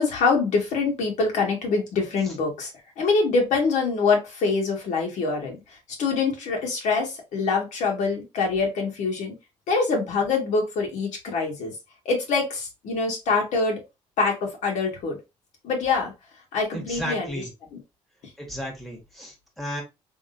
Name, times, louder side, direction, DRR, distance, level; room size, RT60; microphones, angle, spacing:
voice 1, 0.0-2.7 3.0-5.6 6.0-9.3 9.7-11.7 12.0-13.8 14.2-15.2 15.6-16.1 16.5-17.4 17.7-17.8, left 4 dB, 75° left, 0 dB, 1.7 m, -24 dB
voice 2, 16.7-17.5 18.4-19.8, equal, ahead, -1 dB, 1.4 m, -34 dB
3.7 x 3.1 x 2.6 m, 0.23 s
cardioid pair, 140°, 13 cm